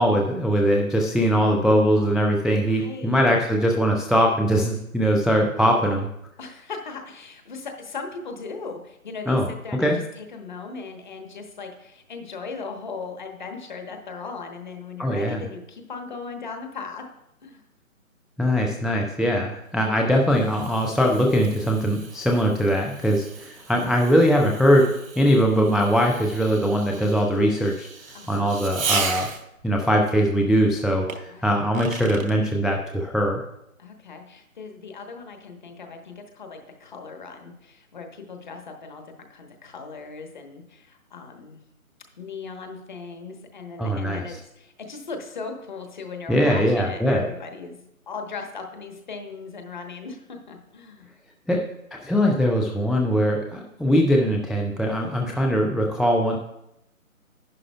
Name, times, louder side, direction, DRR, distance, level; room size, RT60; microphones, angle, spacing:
voice 1, 0.0-6.1 9.3-9.4 9.7-10.0 15.0-15.4 18.4-24.9 25.2-27.9 28.3-29.3 29.6-33.4 43.8-44.4 46.3-47.2 51.5-51.6 52.0-56.4, equal, ahead, 0 dB, 0.3 m, -21 dB
voice 2, 2.6-3.1 6.4-17.0 17.4-17.6 28.1-28.5 31.3-31.7 33.8-39.0 39.3-41.6 42.2-47.8 48.1-51.1, left 4 dB, 35° left, 4 dB, 1.1 m, -38 dB
Fireworks, 19.7-29.7 31.1-32.4, right 5 dB, 65° right, 1.3 m, -35 dB
11.0 x 10.5 x 2.2 m, 0.82 s
figure-of-eight pair, 155°, 42 cm